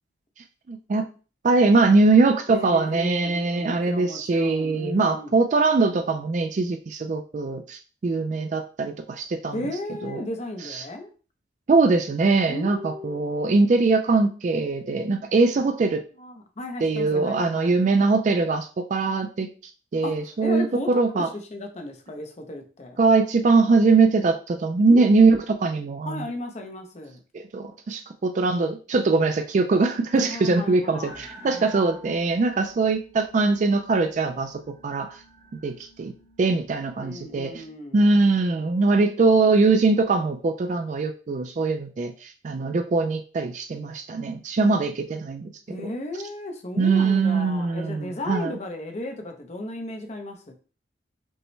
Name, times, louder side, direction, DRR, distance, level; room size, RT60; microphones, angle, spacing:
voice 1, 0.7-1.1 1.4-9.6 10.0-10.2 10.6-10.8 11.7-16.0 16.8-19.5 19.9-21.3 23.0-26.3 27.3-35.2 35.6-36.1 36.4-37.5 37.9-45.9 46.8-48.5, right 3 dB, 45° right, 6 dB, 0.3 m, -22 dB
voice 2, 2.5-5.3 9.5-11.1 12.5-13.2 16.2-17.8 20.0-20.1 20.4-23.0 24.8-25.2 26.0-27.2 30.1-31.2 37.0-38.0 45.7-50.5, left 1 dB, 40° left, 5 dB, 0.7 m, -35 dB
sound 1, 31.0-37.7, right 1 dB, 20° right, 1.0 m, -49 dB
5.3 x 2.1 x 3.1 m, 0.37 s
head